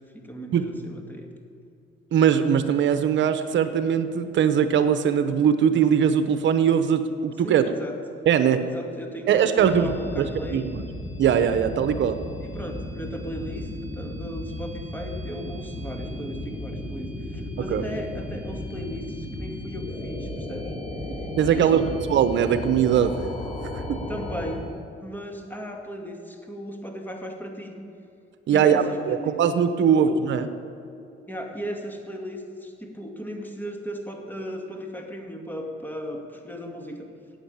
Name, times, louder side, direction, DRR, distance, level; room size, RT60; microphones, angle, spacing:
voice 1, 0.1-1.3 7.4-8.0 8.7-10.6 12.4-20.7 21.2-22.0 24.1-24.7 25.0-27.8 28.5-29.3 29.9-30.2 31.3-37.1, equal, 10° left, 2 dB, 2.2 m, -36 dB
voice 2, 2.1-7.7 8.3-8.6 9.3-9.9 10.2-10.3 10.5-10.6 11.2-12.2 17.7-17.8 21.4-23.2 23.7-24.0 28.5-30.5, right 8 dB, 70° right, 10 dB, 0.9 m, -21 dB
sound 1, 9.6-24.6, left 1 dB, 30° left, 3.2 m, -34 dB
13.0 x 8.7 x 9.0 m, 2.5 s
cardioid pair, 90°, 20 cm